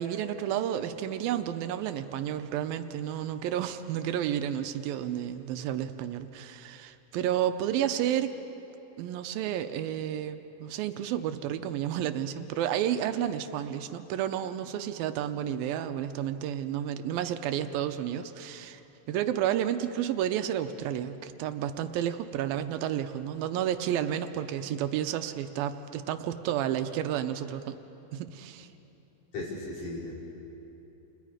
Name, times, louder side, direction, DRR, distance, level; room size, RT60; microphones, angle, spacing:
voice 1, 0.0-8.3 9.0-18.8 19.1-27.8 28.1-28.7, right 10 dB, 85° right, 9 dB, 2.6 m, -31 dB
voice 2, 29.3-30.1, left 2 dB, 65° left, -6 dB, 7.0 m, -36 dB
30.0 x 29.0 x 5.1 m, 3.0 s
omnidirectional pair, 4.2 m